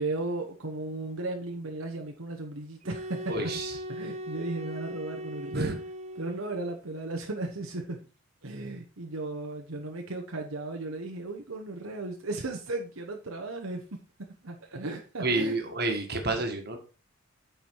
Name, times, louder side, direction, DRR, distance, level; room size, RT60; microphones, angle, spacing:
voice 1, 0.0-3.5 3.9-5.7 6.2-8.0 8.4-13.8 14.4-15.6, right 2 dB, 75° right, 1.1 m, -35 dB
sound 1, 2.8-6.7, equal, 30° right, 0.8 m, -39 dB
voice 2, 3.3-3.8 5.5-5.7 15.2-16.8, right 2 dB, 45° right, 1.7 m, -29 dB
9.1 x 4.8 x 4.7 m
head